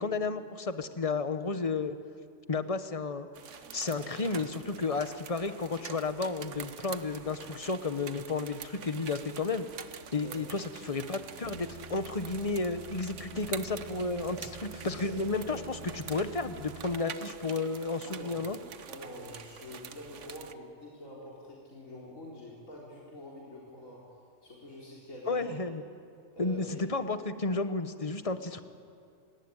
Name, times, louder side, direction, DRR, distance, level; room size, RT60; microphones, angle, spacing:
voice 1, 0.0-2.0 2.5-3.3 3.7-9.7 10.1-14.5 14.8-18.6 25.3-25.8 26.4-28.6, left 3 dB, 30° left, 10 dB, 1.1 m, -32 dB
sound 1, 3.3-20.5, right 7 dB, 65° right, 1.3 m, -46 dB
voice 2, 4.2-4.7 10.2-10.4 14.1-15.8 18.1-18.4 18.9-24.0 24.4-25.5 26.3-26.8, left 1 dB, 75° left, -5 dB, 4.4 m, -46 dB
sound 2, 11.4-17.0, right 3 dB, 40° right, 0.6 m, -47 dB
29.5 x 18.0 x 9.8 m, 2.5 s
omnidirectional pair, 1.4 m